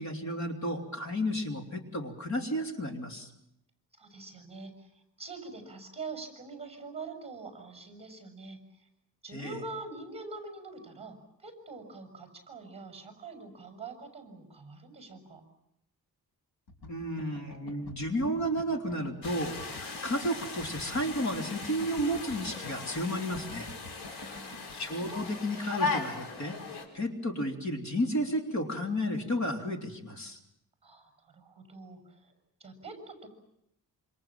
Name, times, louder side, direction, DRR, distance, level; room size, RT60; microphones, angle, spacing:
voice 1, 0.0-3.3 9.3-9.6 16.9-23.7 24.7-26.6 26.9-30.4, equal, 45° left, 4 dB, 3.3 m, -32 dB
voice 2, 3.9-8.9 9.2-15.4 24.1-24.7 30.8-32.3 32.6-33.3, right 3 dB, 15° right, 6 dB, 6.6 m, -45 dB
Guitar Strum, 16.7-24.7, left 2 dB, 65° left, 5.2 m, -47 dB
sound 1, 19.2-26.8, left 4 dB, 85° left, 5.3 m, -38 dB
27.5 x 26.0 x 7.5 m, 0.78 s
wide cardioid pair, 160°, 38 cm